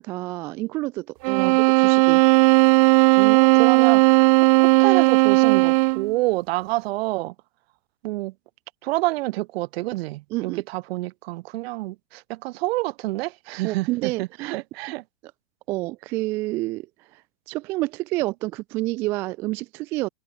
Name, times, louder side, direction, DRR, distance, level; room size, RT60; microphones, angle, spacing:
voice 1, 0.0-2.2 10.3-10.6 13.6-14.6 15.7-16.9 17.1-17.2 17.5-20.1, right 20 dB, 5° right, 0.4 m, -29 dB
sound 1, 1.2-6.1, right 27 dB, 20° right, 0.8 m, -16 dB
voice 2, 3.2-7.3 8.0-8.3 8.8-15.0, right 20 dB, 40° right, 5.2 m, -28 dB
hypercardioid pair, 165°, 47 cm